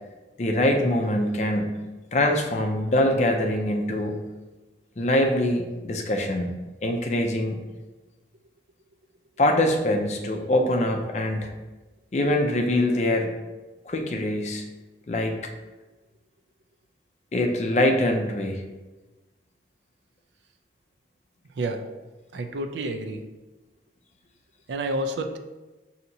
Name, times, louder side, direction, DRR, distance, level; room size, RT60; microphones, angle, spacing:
voice 1, 0.4-1.8 2.1-4.2 5.0-7.6 9.4-11.5 12.1-13.3 13.8-14.6 15.1-15.4 17.3-18.6, left 1 dB, 40° left, 3 dB, 0.4 m, -24 dB
voice 2, 21.5-21.8 22.3-23.2 24.7-25.4, right 1 dB, 85° right, 7 dB, 0.4 m, -29 dB
5.5 x 2.8 x 2.6 m, 1.2 s
head